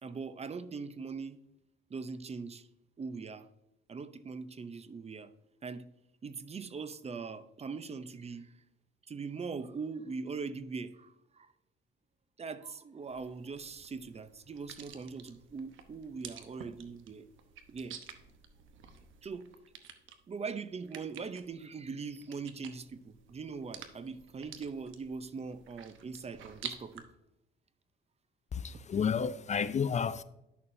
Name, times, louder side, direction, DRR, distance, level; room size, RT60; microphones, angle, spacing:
voice 1, 0.0-1.4 1.9-2.7 3.0-3.5 3.9-5.3 5.6-5.9 6.2-8.5 9.1-11.5 12.4-17.3 17.7-18.0 19.2-19.5 20.3-27.0, right 5 dB, 30° right, 0.6 m, -41 dB
sound 1, 13.1-27.0, right 8 dB, 80° right, 1.0 m, -50 dB
voice 2, 28.5-30.2, left 6 dB, 35° left, 0.4 m, -31 dB
10.5 x 6.8 x 2.7 m
cardioid pair, 90°, 20 cm